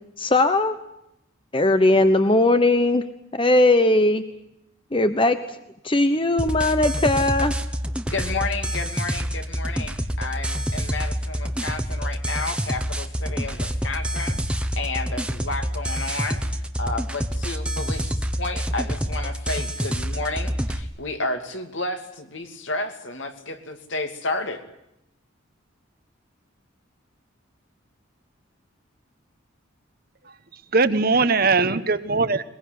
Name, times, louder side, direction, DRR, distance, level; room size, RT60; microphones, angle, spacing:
voice 1, 0.2-0.8 1.5-3.1 3.4-4.2 4.9-5.4 5.8-7.5, left 2 dB, 25° left, 10 dB, 1.0 m, -19 dB
sound 1, 6.4-20.8, equal, 5° right, 1.3 m, -27 dB
voice 2, 8.1-16.4 16.8-24.6, left 2 dB, 65° left, 6 dB, 2.7 m, -31 dB
voice 3, 30.2-32.4, right 4 dB, 50° right, 11 dB, 1.2 m, -21 dB
22.0 x 21.5 x 9.6 m, 0.82 s
head